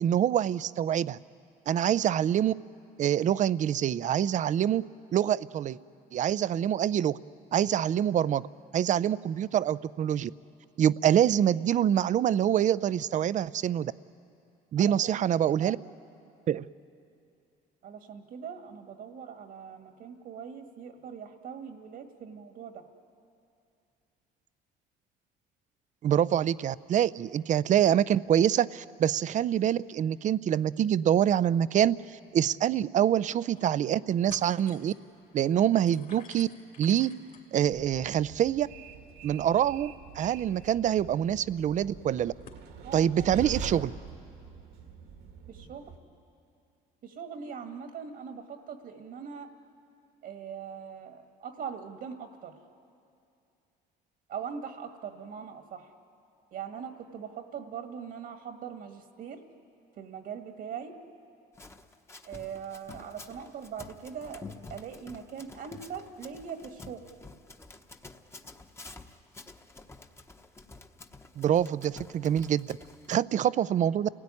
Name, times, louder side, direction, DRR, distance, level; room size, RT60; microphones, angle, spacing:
voice 1, 0.0-1.2 1.7-2.5 3.0-4.8 5.1-5.8 6.1-7.2 7.5-8.5 8.7-10.3 10.8-13.9 14.7-15.8 16.5-16.7 26.0-34.9 35.3-36.5 36.8-37.1 37.5-38.7 39.2-42.3 42.9-43.9 71.4-72.8 73.1-74.1, right 10 dB, 45° right, 18 dB, 0.5 m, -25 dB
voice 2, 14.8-15.8 17.8-22.8 42.8-43.3 45.5-45.8 47.0-49.5 50.2-52.5 54.3-55.9 56.5-59.4 60.0-61.0 62.2-67.0, right 7 dB, 65° right, 6 dB, 1.7 m, -41 dB
sound 1, 32.3-32.4 32.6-32.7 33.3-33.7 34.0-42.7, left 6 dB, 55° left, 2.9 m, -56 dB
Train, 37.6-46.0, right 5 dB, 80° right, 2.0 m, -44 dB
Run, 61.5-73.2, left 3 dB, 15° left, 1.1 m, -49 dB
29.0 x 17.5 x 9.8 m, 2.5 s
cardioid pair, 110°, 17 cm